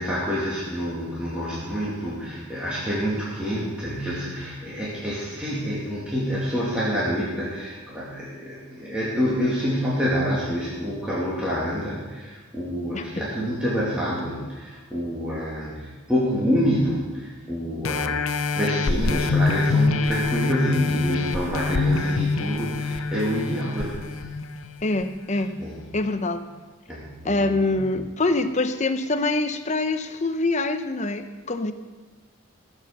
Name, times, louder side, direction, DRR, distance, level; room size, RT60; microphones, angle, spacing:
voice 1, 0.0-24.2 25.6-25.8 26.9-27.8, equal, 5° right, -8 dB, 2.4 m, -27 dB
sound 1, 17.8-25.0 25.6-25.7, left 4 dB, 80° left, 0.7 m, -25 dB
voice 2, 24.8-25.5 25.9-26.4 27.2-31.7, left 2 dB, 35° left, 9 dB, 0.7 m, -24 dB
16.5 x 7.4 x 6.7 m, 1.3 s
head